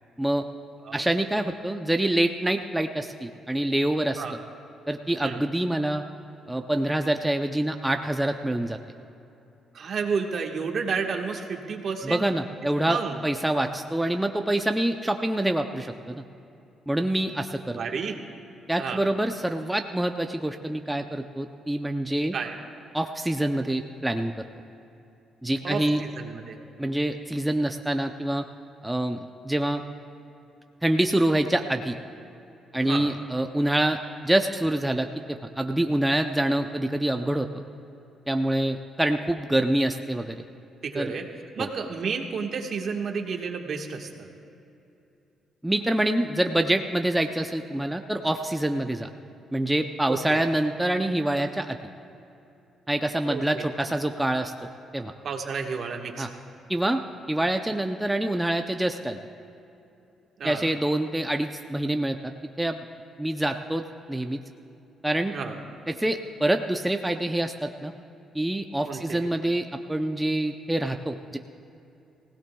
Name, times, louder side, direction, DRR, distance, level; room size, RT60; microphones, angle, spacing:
voice 1, 0.9-4.2 4.9-6.0 6.5-8.8 12.0-16.2 16.9-17.8 18.7-22.3 22.9-24.3 25.4-26.0 26.8-28.4 28.8-29.8 30.8-32.0 32.7-34.0 34.2-37.6 38.3-40.4 40.9-41.1 41.6-41.7 45.6-49.1 49.5-51.8 52.9-54.5 54.9-55.1 56.2-56.3 56.7-57.0 57.3-59.2 60.4-62.3 62.6-62.8 63.2-64.4 65.0-65.3 65.9-67.9 68.3-71.4, right 1 dB, 10° right, 5 dB, 0.6 m, -26 dB
voice 2, 9.7-12.3 12.9-13.2 17.7-18.2 18.8-19.0 22.3-22.5 25.6-26.6 32.8-33.1 40.8-41.2 41.5-44.3 50.1-50.4 53.2-53.7 55.2-56.3 60.4-60.7 65.3-65.5 68.9-69.3, right 5 dB, 55° right, 2 dB, 1.4 m, -31 dB
23.0 x 16.5 x 2.3 m, 2.8 s
cardioid pair, 90°, 0 cm